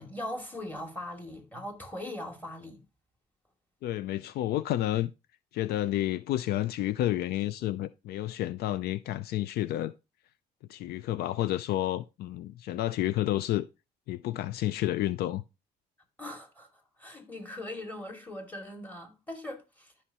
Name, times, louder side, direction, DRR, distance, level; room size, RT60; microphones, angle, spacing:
voice 1, 0.0-2.8 16.2-16.7 17.0-19.9, left 1 dB, 10° left, 2.5 m, -40 dB
voice 2, 3.8-5.1 5.5-9.9 10.7-13.7 14.1-15.4, left 14 dB, 70° left, 0.4 m, -30 dB
12.5 x 5.7 x 2.9 m
cardioid pair, 110°, 17 cm